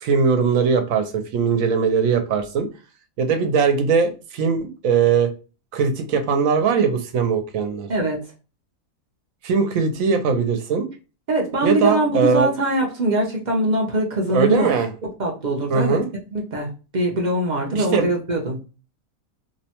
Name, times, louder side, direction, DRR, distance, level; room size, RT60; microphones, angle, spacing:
voice 1, 0.0-2.7 3.2-5.3 5.7-7.9 9.4-10.9 11.6-12.5 14.3-14.9 15.7-16.1 17.7-18.1, right 5 dB, 75° right, 7 dB, 1.0 m, -20 dB
voice 2, 11.3-14.7 15.0-16.0 16.3-18.6, right 1 dB, 55° right, -1 dB, 0.5 m, -22 dB
2.7 x 2.1 x 2.8 m, 0.33 s
omnidirectional pair, 1.5 m